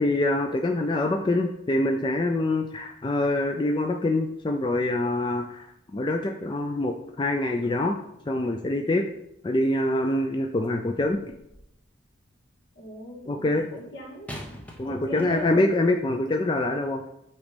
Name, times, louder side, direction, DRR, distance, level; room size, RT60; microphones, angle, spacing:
voice 1, 0.0-5.7 5.9-8.0 8.3-9.1 9.4-11.2 13.3-13.7 14.8-17.0, left 2 dB, 25° left, 3 dB, 0.4 m, -25 dB
sound 1, 11.4-11.9 14.3-15.8 16.6-16.7, equal, 10° left, 0.8 m, -43 dB
voice 2, 12.8-14.3 14.8-15.7, equal, 70° left, -2 dB, 1.9 m, -39 dB
8.1 x 3.1 x 5.1 m, 0.81 s
head